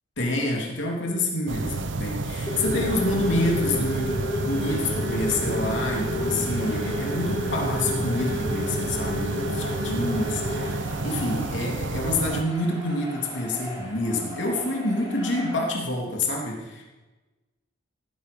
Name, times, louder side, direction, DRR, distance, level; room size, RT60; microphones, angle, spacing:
voice 1, 0.2-16.8, left 1 dB, 65° left, -1 dB, 3.2 m, -27 dB
sound 1, 1.5-12.4, right 3 dB, 65° right, 0.9 m, -30 dB
sound 2, 2.5-10.7, left 1 dB, 20° left, 5.1 m, -31 dB
sound 3, 6.2-15.7, equal, 20° right, 4.3 m, -42 dB
18.0 x 10.0 x 5.5 m, 1.2 s
head